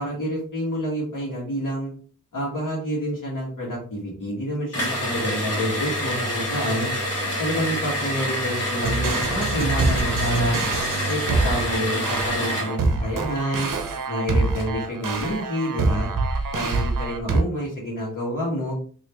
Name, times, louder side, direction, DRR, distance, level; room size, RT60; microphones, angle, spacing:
voice 1, 0.0-1.9 2.3-6.9 7.4-10.6 11.1-13.7 14.1-16.1 16.5-18.7, equal, 75° left, -6 dB, 1.5 m, -28 dB
sound 1, 4.7-12.7, equal, 50° left, 1.4 m, -27 dB
sound 2, 8.8-17.4, right 3 dB, 90° right, 0.6 m, -25 dB
3.4 x 2.9 x 3.0 m, 0.43 s
wide cardioid pair, 85°, 31 cm